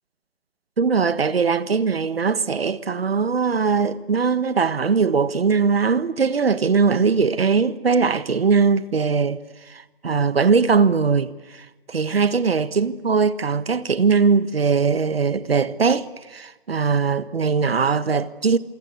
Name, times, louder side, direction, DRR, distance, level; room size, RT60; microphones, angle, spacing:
voice 1, 0.8-9.4 9.7-18.6, right 5 dB, 80° right, 1.5 m, -20 dB
27.5 x 24.0 x 8.2 m
figure-of-eight pair, 140°, 30 cm